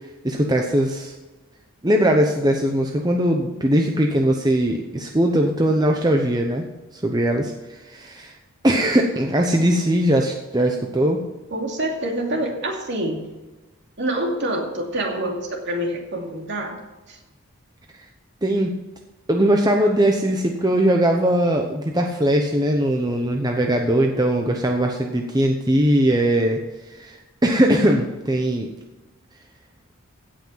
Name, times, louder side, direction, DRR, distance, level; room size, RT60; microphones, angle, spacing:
voice 1, 0.2-1.1 1.8-6.6 6.9-8.3 8.6-11.2 18.4-18.7 19.3-26.6 27.0-27.2 27.4-28.7, right 1 dB, 20° right, 2 dB, 0.8 m, -20 dB
voice 2, 11.5-13.2 14.0-16.8 17.1-17.2, right 1 dB, 55° right, 1 dB, 2.6 m, -26 dB
16.5 x 6.0 x 5.6 m, 1.2 s
head